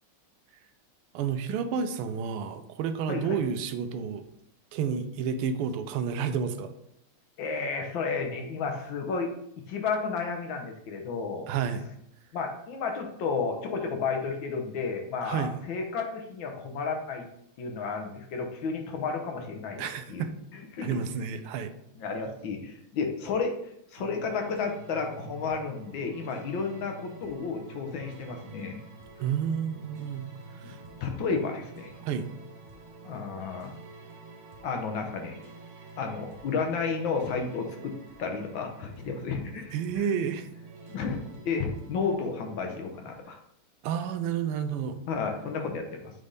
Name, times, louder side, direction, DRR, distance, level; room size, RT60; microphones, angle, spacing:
voice 1, 1.1-4.2 4.7-6.7 11.5-11.9 15.2-15.5 19.8-20.3 20.8-21.7 29.2-30.3 30.5-30.8 32.0-32.3 39.7-40.5 43.8-45.0, right 7 dB, 90° right, 9 dB, 1.5 m, -30 dB
voice 2, 7.4-9.3 9.7-11.5 12.3-17.3 17.6-20.2 20.7-21.0 22.0-23.5 23.9-28.8 30.6-30.7 31.0-31.9 33.0-33.7 34.6-35.4 36.0-40.1 40.9-41.2 41.4-43.4 45.1-46.1, left 5 dB, 70° left, 3 dB, 1.5 m, -32 dB
sound 1, 24.0-43.2, right 3 dB, 70° right, 1.8 m, -48 dB
7.3 x 3.4 x 4.0 m, 0.75 s
omnidirectional pair, 2.4 m